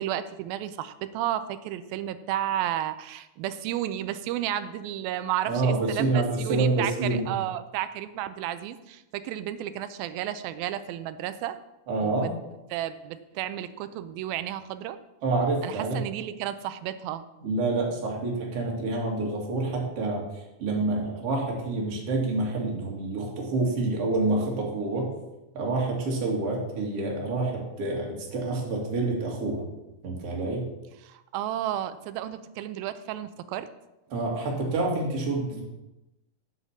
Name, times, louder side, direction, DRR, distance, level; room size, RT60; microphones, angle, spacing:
voice 1, 0.0-11.6 12.0-12.3 12.7-15.0 15.6-17.3 31.0-33.7, right 12 dB, 85° right, 12 dB, 2.5 m, -32 dB
voice 2, 5.5-7.3 11.9-12.3 15.2-16.0 17.4-20.2 20.6-25.1 25.5-29.7 30.0-30.7 34.1-35.6, right 3 dB, 45° right, -2 dB, 2.9 m, -27 dB
8.1 x 7.8 x 7.3 m, 0.97 s
omnidirectional pair, 4.2 m